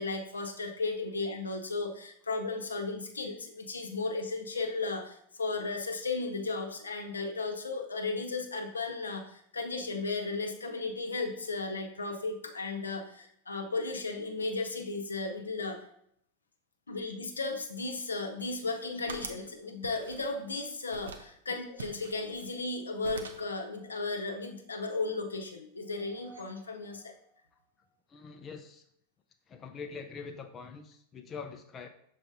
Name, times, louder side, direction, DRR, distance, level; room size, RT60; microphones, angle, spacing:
voice 1, 0.0-15.8 16.9-27.1, left 3 dB, 75° left, 4 dB, 0.8 m, -35 dB
sound 1, 18.4-19.5 19.8-20.6 20.9-21.3 21.8-22.8 23.0-23.5, right 4 dB, 65° right, 0.6 m, -45 dB
sound 2, 25.8-28.1, right 4 dB, 85° right, 1.8 m, -57 dB
voice 2, 28.1-28.8 29.5-31.9, left 5 dB, 25° left, 5 dB, 0.5 m, -44 dB
6.3 x 4.1 x 3.7 m, 0.71 s
figure-of-eight pair, 90°, 0 cm